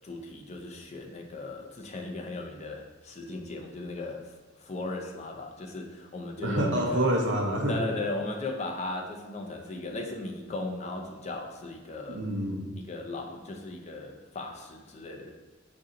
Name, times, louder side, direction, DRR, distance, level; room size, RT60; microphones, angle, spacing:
voice 1, 0.0-4.2 4.6-7.1 7.7-12.2 12.8-15.3, left 2 dB, 35° left, 2 dB, 0.4 m, -37 dB
voice 2, 6.4-7.8 12.1-12.7, right 1 dB, 60° right, 1 dB, 0.7 m, -27 dB
5.2 x 2.6 x 3.8 m, 1.2 s
head